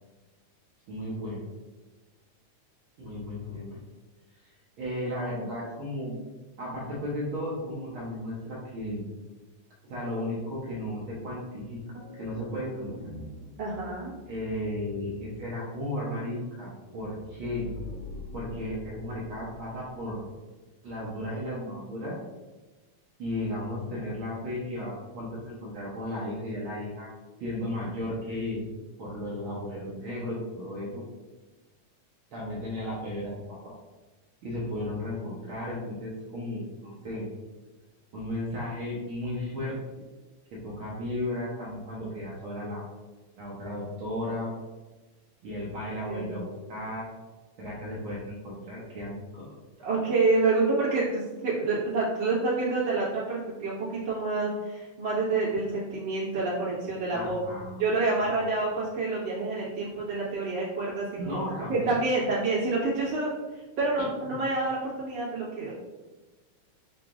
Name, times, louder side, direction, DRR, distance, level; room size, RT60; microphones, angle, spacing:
voice 1, 0.9-1.4 3.0-3.8 4.8-6.1 6.6-9.0 9.9-13.1 14.3-17.7 18.3-20.2 20.8-22.2 23.2-27.1 27.4-28.7 29.0-31.0 32.3-33.7 34.4-37.3 38.1-39.8 40.5-42.8 43.4-44.5 45.4-47.0 47.6-49.5 57.1-57.8 58.2-58.3 61.2-61.9 64.3-64.4, left 1 dB, 80° right, -6 dB, 1.1 m, -34 dB
sound 1, 11.6-20.4, left 1 dB, 90° left, 2.7 m, -45 dB
voice 2, 13.6-14.1 46.1-46.3 49.8-57.4 57.8-61.4 61.7-65.7, right 3 dB, 55° right, -8 dB, 2.5 m, -28 dB
7.2 x 2.9 x 2.5 m, 1.2 s
omnidirectional pair, 3.5 m